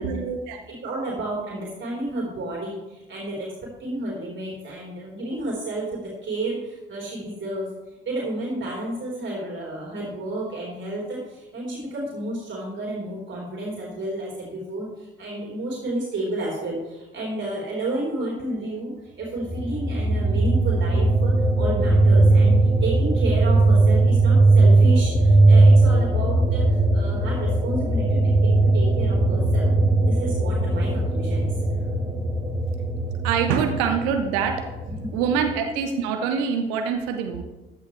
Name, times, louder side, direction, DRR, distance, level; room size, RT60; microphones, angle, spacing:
voice 1, 0.0-0.6 33.2-34.7 35.1-37.4, right 6 dB, 65° right, 6 dB, 1.1 m, -25 dB
voice 2, 0.7-3.5 3.8-7.7 8.1-18.9 19.2-29.7 30.0-31.5 34.9-35.1, right 2 dB, 40° right, -4 dB, 3.9 m, -31 dB
sound 1, 19.4-35.6, right 2 dB, 10° right, 3.1 m, -19 dB
15.0 x 10.0 x 3.2 m, 1.1 s
figure-of-eight pair, 50°, 30 cm